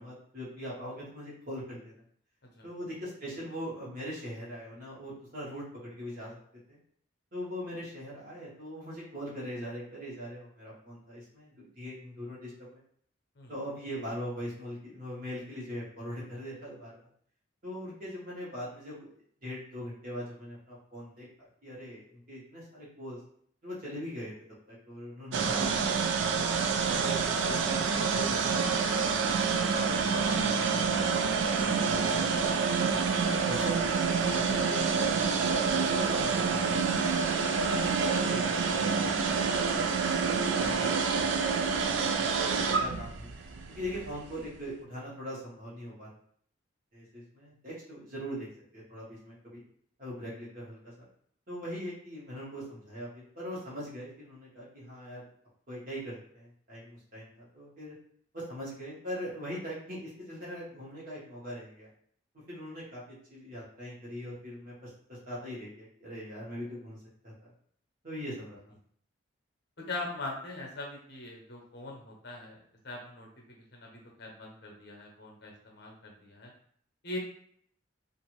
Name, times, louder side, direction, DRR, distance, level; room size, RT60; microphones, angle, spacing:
voice 1, 0.0-1.9 2.6-6.4 6.7-6.8 7.3-12.8 13.5-17.1 17.6-21.3 21.6-23.2 23.6-24.3 24.7-26.5 27.0-33.0 33.4-34.9 35.2-38.9 39.2-41.3 41.9-43.3 43.7-46.1 46.9-48.5 48.7-49.6 50.0-51.1 51.5-55.3 55.7-57.9 58.3-61.9 62.5-67.0 67.2-67.5 68.0-68.7, equal, 45° right, -7 dB, 1.1 m, -41 dB
sound 1, 25.3-44.4, right 5 dB, 65° right, 0.3 m, -28 dB
voice 2, 69.8-72.6 72.8-73.3 73.7-76.5 77.0-77.2, left 2 dB, 55° left, -1 dB, 0.7 m, -41 dB
2.5 x 2.5 x 3.0 m, 0.62 s
head